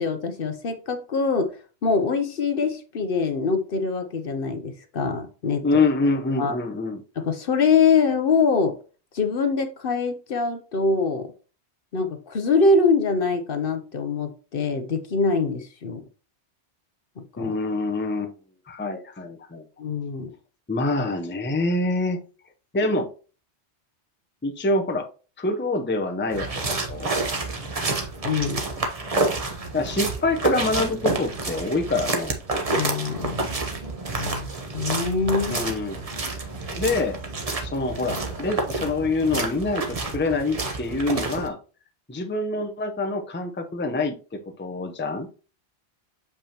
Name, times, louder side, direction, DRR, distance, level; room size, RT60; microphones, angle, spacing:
voice 1, 0.0-5.6 6.4-6.6 7.2-8.8 9.1-11.3 11.9-16.0 17.2-17.6 19.8-20.3 28.2-28.6 32.7-33.5 34.1-35.6, left 4 dB, 55° left, 0.9 m, -24 dB
voice 2, 5.6-7.0 17.4-18.3 18.7-19.6 20.7-22.2 22.7-23.1 24.4-25.1 25.4-27.1 29.7-32.3 35.5-36.0 36.8-37.2 37.6-41.6 42.1-45.3, left 2 dB, 10° left, 0.6 m, -26 dB
sound 1, 26.3-41.5, right 2 dB, 35° right, 1.0 m, -29 dB
6.9 x 5.4 x 2.9 m
omnidirectional pair, 1.1 m